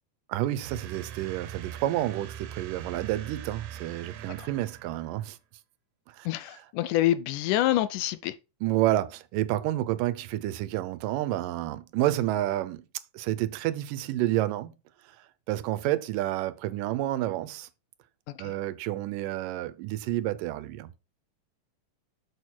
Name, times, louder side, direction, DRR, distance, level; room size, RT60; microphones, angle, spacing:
voice 1, 0.3-5.4 6.1-6.3 8.6-12.9 13.1-14.7 15.2-17.7 18.4-21.0, right 14 dB, 90° right, 2.3 m, -29 dB
sound 1, 0.6-5.3, right 10 dB, 70° right, 2.2 m, -42 dB
voice 2, 6.2-8.4 18.3-18.5, left 14 dB, 80° left, 2.0 m, -27 dB
6.6 x 6.4 x 4.4 m
omnidirectional pair, 3.8 m